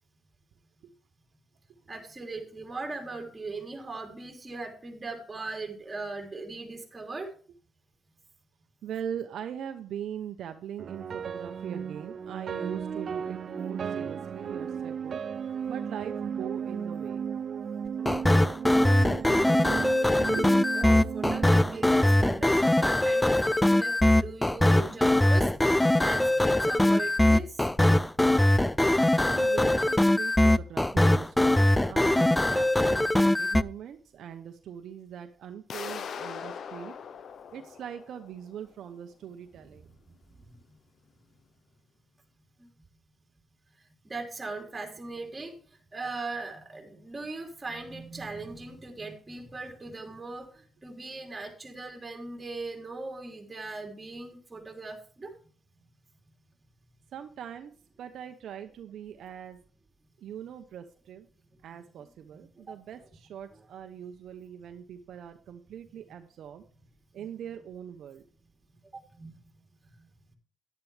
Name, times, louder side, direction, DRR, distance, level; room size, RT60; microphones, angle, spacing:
voice 1, 1.9-7.3 20.7-27.7 40.4-40.5 42.6-42.7 44.0-45.5 45.9-55.3 63.5-63.6 68.9-69.3, right 3 dB, 20° right, 2 dB, 3.4 m, -39 dB
voice 2, 8.8-15.2 15.7-17.2 20.3-20.5 29.1-36.9 37.5-39.9 57.1-57.7 58.0-59.6 60.2-61.3 61.6-66.6 67.1-68.2, right 9 dB, 70° right, 6 dB, 0.9 m, -41 dB
sound 1, 10.8-23.1, right 7 dB, 50° right, 0.4 m, -35 dB
sound 2, 18.1-33.6, left 1 dB, 10° left, 0.4 m, -22 dB
sound 3, 35.7-38.5, left 7 dB, 60° left, 0.8 m, -40 dB
10.5 x 10.5 x 3.4 m, 0.43 s
cardioid pair, 90°, 0 cm